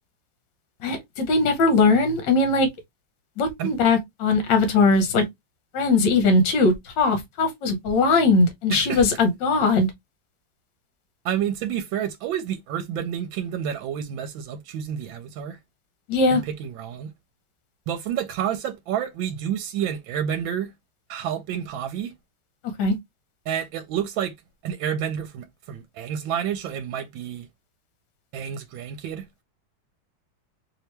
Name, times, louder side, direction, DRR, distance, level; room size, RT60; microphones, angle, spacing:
voice 1, 0.8-2.7 3.4-5.2 5.7-9.9 16.1-16.4 22.8-22.9, left 3 dB, 70° left, 1.5 m, -20 dB
voice 2, 8.7-9.0 11.2-15.6 16.3-17.1 17.9-20.7 21.1-22.1 23.5-24.3 24.6-27.5 28.3-29.4, right 9 dB, 80° right, 1.3 m, -29 dB
3.2 x 2.9 x 3.2 m
omnidirectional pair, 2.2 m